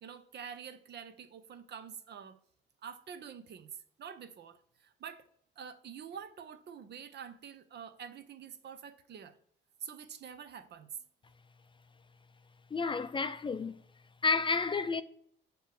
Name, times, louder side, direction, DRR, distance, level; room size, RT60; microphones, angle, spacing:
voice 1, 0.0-2.4 2.8-3.7 4.0-5.3 5.6-9.3 9.8-10.9, right 7 dB, 60° right, 0.7 m, -47 dB
voice 2, 12.7-13.8 14.2-15.0, left 4 dB, 25° left, 0.4 m, -31 dB
6.6 x 3.1 x 4.9 m
cardioid pair, 90°, 20 cm